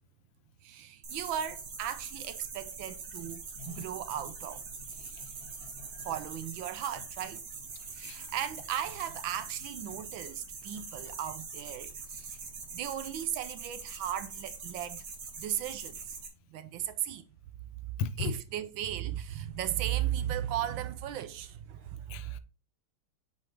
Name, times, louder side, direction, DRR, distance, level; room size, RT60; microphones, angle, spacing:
voice 1, 0.6-4.7 6.0-7.5 7.9-12.4 12.7-15.0 15.4-16.2 16.5-17.3 18.2-22.4, right 11 dB, 75° right, 1.3 m, -36 dB
sound 1, 1.0-16.3, right 4 dB, 50° right, 1.6 m, -43 dB
voice 2, 5.0-6.1 8.0-8.3 18.0-18.3 22.1-22.4, left 6 dB, 85° left, 1.5 m, -38 dB
8.0 x 5.0 x 3.2 m
omnidirectional pair, 2.3 m